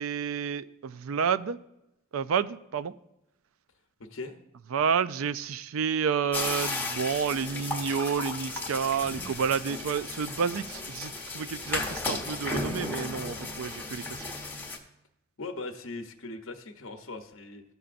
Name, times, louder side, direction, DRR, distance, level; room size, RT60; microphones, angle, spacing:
voice 1, 0.0-1.6 2.1-2.9 4.7-14.3, right 6 dB, 85° right, 15 dB, 0.4 m, -30 dB
sound 1, 6.3-14.8, left 3 dB, 10° left, 1.0 m, -35 dB
voice 2, 15.4-17.6, left 3 dB, 70° left, 6 dB, 0.8 m, -39 dB
14.5 x 6.8 x 2.5 m, 0.88 s
head